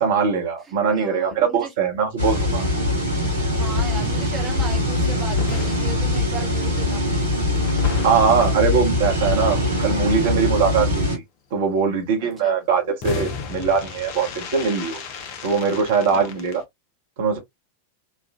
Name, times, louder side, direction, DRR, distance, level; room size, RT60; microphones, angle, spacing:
voice 1, 0.0-2.6 8.0-11.2 11.5-15.0 15.4-16.6 17.2-17.4, right 5 dB, 55° right, 1.0 m, -21 dB
voice 2, 0.6-1.7 3.5-7.3 12.2-12.6 16.1-16.3, right 4 dB, 15° right, 1.0 m, -37 dB
sound 1, 2.2-11.2, left 1 dB, 80° right, 1.4 m, -22 dB
sound 2, 2.6-10.1 13.0-16.6, left 6 dB, 45° left, 0.7 m, -36 dB
3.2 x 2.4 x 2.4 m
figure-of-eight pair, 90°, 0 cm